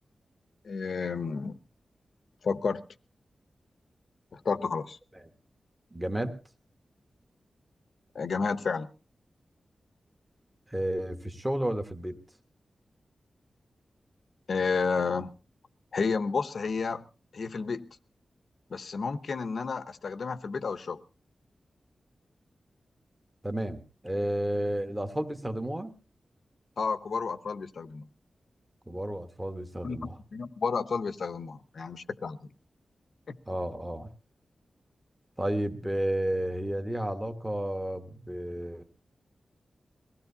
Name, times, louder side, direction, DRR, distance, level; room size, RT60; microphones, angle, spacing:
voice 1, 0.6-1.6 2.4-2.8 4.3-5.0 8.1-8.9 14.5-15.3 15.9-17.1 17.3-18.0 18.7-21.0 26.8-28.1 29.8-32.5 33.3-33.4, left 5 dB, 60° left, 12 dB, 0.8 m, -31 dB
voice 2, 5.9-6.4 10.7-12.2 23.4-25.9 28.9-30.1 33.5-34.1 35.4-38.8, right 1 dB, 10° right, 6 dB, 1.3 m, -32 dB
22.5 x 16.5 x 2.8 m, 0.34 s
wide cardioid pair, 180°, 0 cm